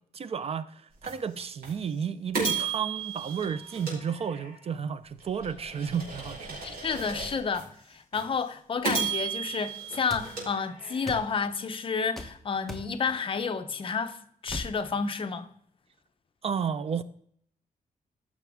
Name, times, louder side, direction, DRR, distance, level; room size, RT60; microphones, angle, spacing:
voice 1, 0.1-6.6 16.4-17.0, right 7 dB, 40° right, 0.4 m, -32 dB
sound 1, 1.0-1.1 1.6-1.7 2.3-4.7 5.2-7.6 8.1-8.2 8.8-11.2, right 5 dB, 85° right, 4.6 m, -34 dB
voice 2, 6.6-14.2 14.4-15.5, left 5 dB, 35° left, 0.7 m, -30 dB
sound 2, 10.1-10.3 11.1-11.3 12.2-12.3 12.7-12.9 14.5-14.7, equal, ahead, 1.1 m, -37 dB
15.0 x 6.1 x 3.6 m
wide cardioid pair, 175°, 15 cm